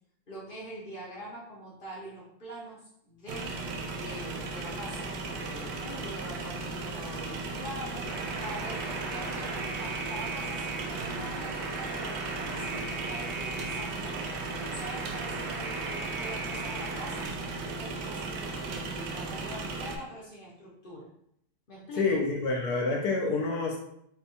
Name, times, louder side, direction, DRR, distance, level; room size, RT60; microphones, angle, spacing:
voice 1, 0.3-3.6 4.0-8.2 8.4-17.3 17.6-21.1 21.7-22.2, equal, 45° left, -5 dB, 0.7 m, -44 dB
sound 1, 3.3-20.0, right 3 dB, 85° right, 1.2 m, -36 dB
Alarm, 8.0-17.3, right 3 dB, 65° right, 1.0 m, -38 dB
voice 2, 22.0-23.8, left 3 dB, 75° left, -1 dB, 1.2 m, -27 dB
4.3 x 2.2 x 2.7 m, 0.72 s
omnidirectional pair, 1.8 m